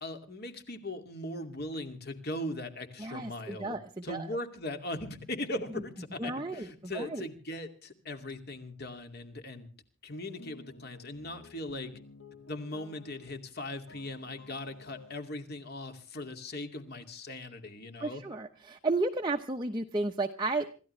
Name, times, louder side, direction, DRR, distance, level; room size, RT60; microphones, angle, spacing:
voice 1, 0.0-3.8 4.0-9.7 10.0-11.9 12.5-18.2, left 1 dB, 45° left, 7 dB, 2.4 m, -39 dB
voice 2, 3.0-4.3 6.2-7.3 18.0-20.7, right 2 dB, 20° right, 2 dB, 0.9 m, -33 dB
sound 1, 10.1-13.4 13.7-15.2, left 2 dB, 80° left, 1.9 m, -53 dB
26.5 x 14.5 x 3.3 m, 0.38 s
head